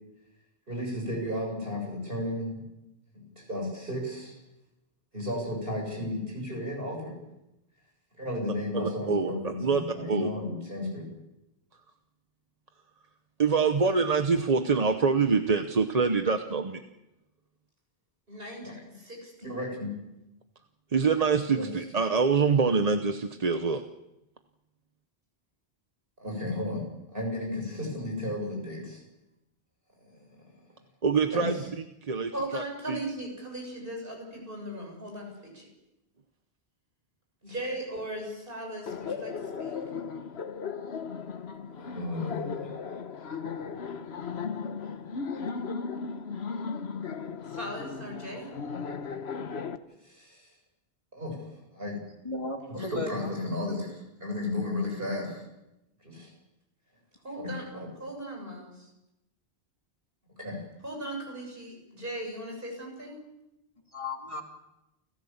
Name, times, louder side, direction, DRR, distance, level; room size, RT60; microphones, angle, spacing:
voice 1, 0.7-2.6 3.1-4.4 5.1-7.1 8.2-11.1 18.3-19.9 21.6-21.7 26.2-26.9 27.1-29.0 30.0-30.4 31.3-31.4 32.3-35.7 37.4-39.8 41.8-42.7 47.5-48.5 50.0-50.5 51.1-51.4 51.7-52.0 52.7-55.4 56.0-56.3 57.2-58.7 60.4-63.2, left 1 dB, 55° right, 1 dB, 7.6 m, -35 dB
voice 2, 8.7-10.3 13.4-16.8 20.9-23.8 31.0-31.6 32.0-33.0, right 5 dB, 40° right, 7 dB, 0.9 m, -25 dB
Laughter, 38.9-49.8, left 5 dB, 70° left, 1.3 m, -36 dB
voice 3, 52.2-53.4 63.9-64.4, left 2 dB, 30° left, 1 dB, 2.8 m, -35 dB
29.5 x 15.0 x 7.2 m, 0.93 s
omnidirectional pair, 1.1 m